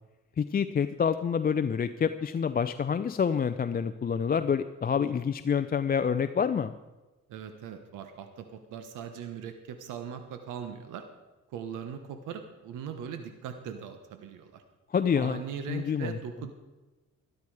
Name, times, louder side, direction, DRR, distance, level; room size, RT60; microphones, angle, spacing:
voice 1, 0.4-6.7 14.9-15.4 15.7-16.2, left 7 dB, 30° left, 10 dB, 0.5 m, -27 dB
voice 2, 7.3-11.1 11.5-14.6 15.1-16.5, right 8 dB, 90° right, 8 dB, 1.2 m, -40 dB
13.0 x 12.5 x 4.9 m, 1.1 s
cardioid pair, 90°, 30 cm